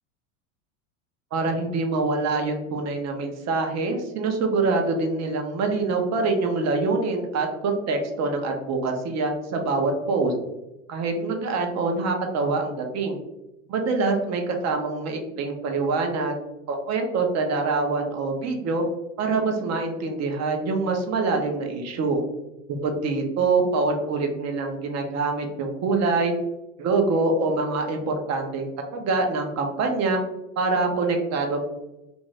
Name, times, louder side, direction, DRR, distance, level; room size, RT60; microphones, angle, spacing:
voice 1, 1.3-10.3 10.9-13.2 13.7-16.3 16.7-18.8 19.2-22.2 22.8-26.3 26.8-30.2 30.6-31.6, right 3 dB, 40° right, 4 dB, 0.7 m, -25 dB
2.6 x 2.5 x 3.1 m, 0.94 s
hypercardioid pair, 100°, 41 cm